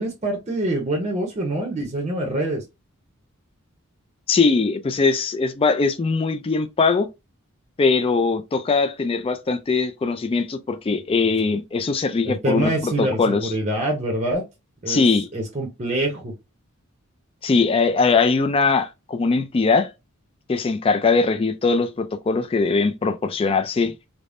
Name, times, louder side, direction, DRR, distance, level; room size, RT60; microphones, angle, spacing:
voice 1, 0.0-2.6 12.2-14.4 14.8-15.0 15.3-16.3, right 1 dB, 35° right, 0.7 m, -25 dB
voice 2, 4.3-7.1 7.8-13.5 14.9-15.3 17.4-19.9 20.5-23.9, left 4 dB, 25° left, 0.3 m, -21 dB
3.4 x 2.0 x 2.5 m
head